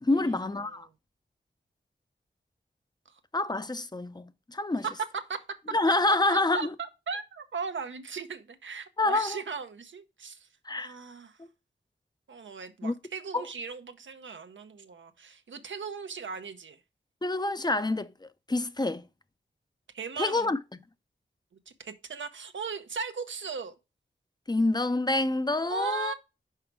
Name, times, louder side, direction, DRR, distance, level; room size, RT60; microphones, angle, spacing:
voice 1, 0.0-0.9 3.3-4.8 5.7-6.7 9.0-9.4 10.7-10.9 11.4-11.5 12.8-12.9 13.3-13.4 17.2-19.0 20.2-20.6 24.5-26.1, left 2 dB, 20° left, 0.5 m, -27 dB
voice 2, 4.8-5.4 6.1-10.5 10.8-11.4 12.3-16.8 19.9-20.6 21.8-23.7 25.7-26.1, right 5 dB, 85° right, 0.7 m, -37 dB
5.6 x 4.9 x 4.5 m
wide cardioid pair, 65°, 19 cm